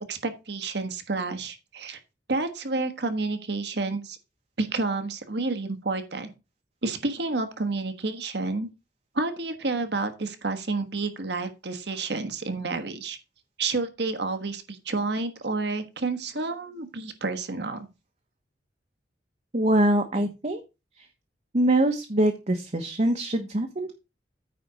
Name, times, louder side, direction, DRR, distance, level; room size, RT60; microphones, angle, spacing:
voice 1, 0.1-2.0 2.3-4.2 4.6-6.3 6.8-8.7 9.1-13.2 13.6-17.9, right 3 dB, 70° right, 7 dB, 1.4 m, -30 dB
voice 2, 19.5-20.6 21.0-21.1 21.5-24.0, right 1 dB, 40° right, 5 dB, 1.1 m, -24 dB
9.3 x 4.3 x 6.2 m, 0.27 s
head